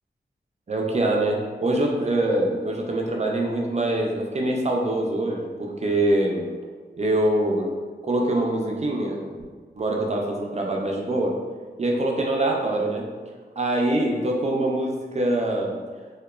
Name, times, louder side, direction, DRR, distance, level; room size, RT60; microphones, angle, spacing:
voice 1, 0.7-6.4 7.0-7.7 8.0-9.2 9.7-11.3 11.8-13.1 13.6-15.8, right 1 dB, 40° right, 0 dB, 0.3 m, -24 dB
2.8 x 2.1 x 2.3 m, 1.5 s
wide cardioid pair, 90°, 18 cm